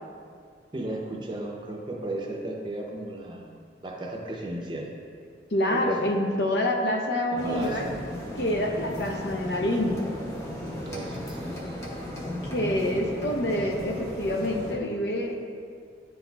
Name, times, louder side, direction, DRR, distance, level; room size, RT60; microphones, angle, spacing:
voice 1, 0.7-3.5 3.8-4.9 5.7-6.0 7.4-7.9 10.8-11.6, right 1 dB, 25° right, 0 dB, 0.6 m, -34 dB
voice 2, 5.5-7.9 8.4-10.0 12.4-15.4, left 1 dB, 70° left, 2 dB, 0.6 m, -27 dB
sound 1, 7.4-14.7, left 1 dB, 15° left, 0.7 m, -36 dB
9.9 x 4.1 x 2.3 m, 2.2 s
head